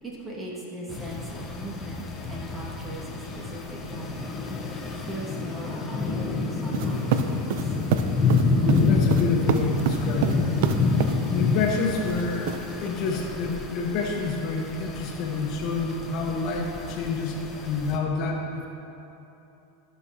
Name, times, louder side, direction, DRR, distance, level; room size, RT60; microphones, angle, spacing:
voice 1, 0.0-4.2 4.8-7.7, equal, 20° right, -4 dB, 1.8 m, -38 dB
sound 1, 0.9-18.0, left 4 dB, 25° left, 0.9 m, -28 dB
sound 2, 6.7-11.2 12.1-12.9, right 9 dB, 70° right, 0.4 m, -27 dB
voice 2, 8.9-10.4 11.3-18.7, left 4 dB, 50° left, 1 dB, 1.0 m, -28 dB
13.5 x 6.2 x 2.8 m, 3.0 s
supercardioid pair, 120°, 0 cm